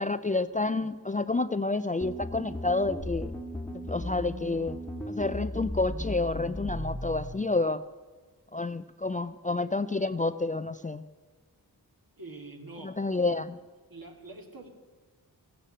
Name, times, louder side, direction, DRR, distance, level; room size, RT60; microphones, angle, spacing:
voice 1, 0.0-3.3 3.7-4.8 5.1-7.8 8.5-11.0 12.8-13.5, left 3 dB, 20° left, 12 dB, 0.4 m, -29 dB
sound 1, 2.0-7.3, left 1 dB, 5° left, 1.5 m, -36 dB
voice 2, 12.2-13.4 13.9-14.7, right 2 dB, 55° right, 3 dB, 2.6 m, -45 dB
15.0 x 9.9 x 8.9 m, 1.4 s
cardioid pair, 50°, 41 cm